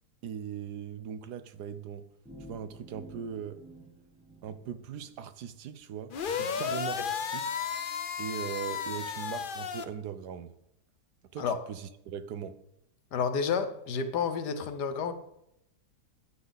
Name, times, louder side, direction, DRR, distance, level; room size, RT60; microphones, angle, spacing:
voice 1, 0.2-2.1 2.5-3.6 4.4-6.1 6.4-7.5 8.2-10.5 11.3-12.6, right 8 dB, 80° right, 1.4 m, -39 dB
sound 1, 2.2-5.1, right 1 dB, 5° right, 0.8 m, -51 dB
sound 2, 6.1-9.9, left 7 dB, 55° left, 0.6 m, -33 dB
voice 2, 13.1-15.1, left 6 dB, 80° left, 1.6 m, -30 dB
14.0 x 9.4 x 4.0 m
omnidirectional pair, 1.7 m